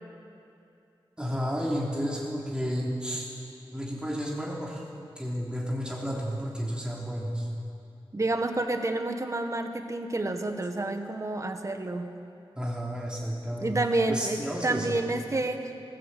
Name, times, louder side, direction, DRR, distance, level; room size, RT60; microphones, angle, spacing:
voice 1, 1.2-3.3 3.7-4.8 5.2-7.5 12.6-13.8 14.1-15.0, equal, 10° right, -4 dB, 3.0 m, -32 dB
voice 2, 8.1-12.1 13.6-15.7, right 2 dB, 35° right, 6 dB, 1.6 m, -29 dB
20.5 x 17.0 x 8.5 m, 2.6 s
wide cardioid pair, 115°, 9 cm